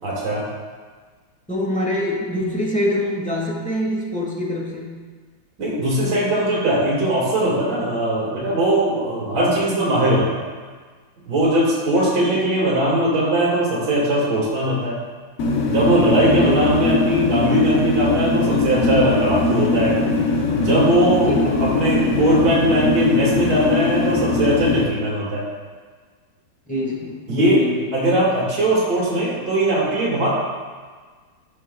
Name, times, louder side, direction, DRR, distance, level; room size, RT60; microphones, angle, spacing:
voice 1, 0.0-0.4 5.6-10.4 11.3-15.0 15.7-20.0 20.5-25.4 27.3-27.6 27.9-30.4, right 1 dB, 60° right, -6 dB, 2.5 m, -20 dB
voice 2, 1.5-5.0 12.1-12.4 16.3-16.6 21.3-21.8 26.7-27.9, left 1 dB, 5° left, -3 dB, 0.9 m, -25 dB
sound 1, 15.4-24.8, left 3 dB, 60° left, 0.8 m, -21 dB
15.0 x 5.4 x 2.2 m, 1.5 s
omnidirectional pair, 2.1 m